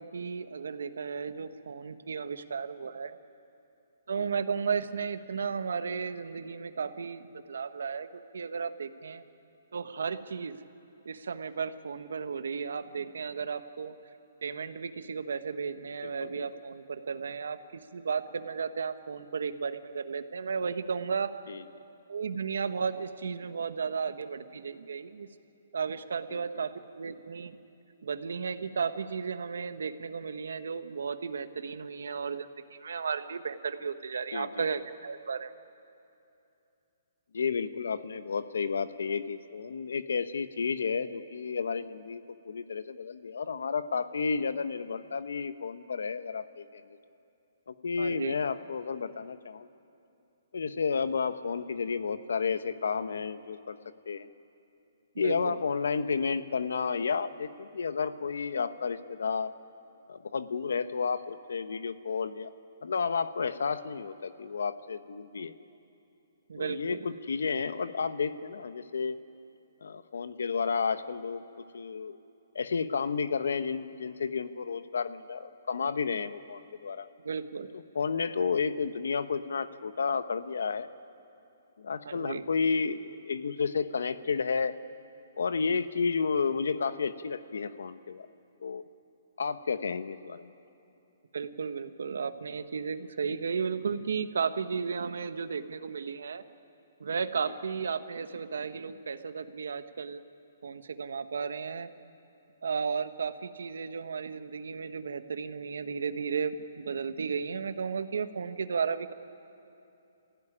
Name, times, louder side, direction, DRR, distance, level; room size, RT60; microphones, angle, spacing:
voice 1, 0.0-3.2 4.1-9.2 9.7-10.6 11.0-13.9 14.4-17.6 17.9-21.3 22.1-25.3 25.7-27.5 28.0-35.5 48.0-48.3 55.1-55.6 66.5-67.0 77.2-77.7 78.3-78.5 82.0-82.4 91.3-96.4 97.0-100.2 100.6-101.9 102.6-109.1, right 5 dB, 80° right, 10 dB, 1.3 m, -34 dB
voice 2, 16.0-16.4 21.5-21.6 26.3-26.4 34.3-34.6 37.3-47.0 47.7-49.7 50.5-53.8 54.1-54.3 55.2-59.5 60.1-62.5 62.8-65.5 66.6-69.2 69.8-71.4 71.7-72.2 72.5-77.1 77.9-80.9 81.8-84.8 85.4-88.3 88.6-88.8 89.4-90.5, left 5 dB, 80° left, 12 dB, 1.1 m, -31 dB
27.0 x 16.0 x 9.9 m, 2.8 s
hypercardioid pair, 170°, 0 cm